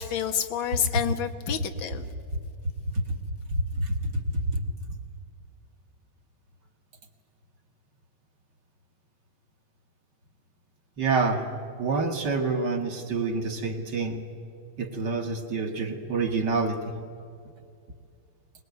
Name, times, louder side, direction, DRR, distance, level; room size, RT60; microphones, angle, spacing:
voice 1, 0.0-2.0, left 9 dB, 70° left, 8 dB, 1.7 m, -29 dB
voice 2, 3.5-4.0 4.3-4.6 11.0-11.5 11.8-14.2 14.8-16.9, right 3 dB, 55° right, 4 dB, 2.2 m, -27 dB
22.0 x 20.0 x 9.3 m, 2.4 s
omnidirectional pair, 2.3 m